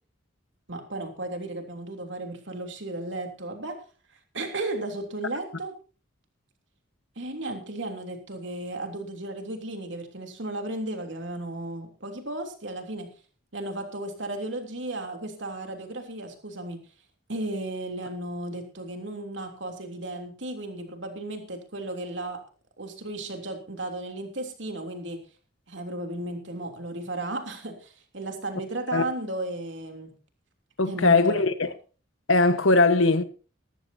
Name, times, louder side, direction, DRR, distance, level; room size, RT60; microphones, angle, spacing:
voice 1, 0.7-3.8 4.3-5.7 7.2-13.1 13.5-16.8 17.3-22.4 22.8-25.2 25.7-30.2 30.9-31.4, right 2 dB, 65° right, 3.2 m, -34 dB
voice 2, 30.8-31.7 32.3-33.2, left 3 dB, 90° left, 1.4 m, -20 dB
19.5 x 15.0 x 2.8 m
head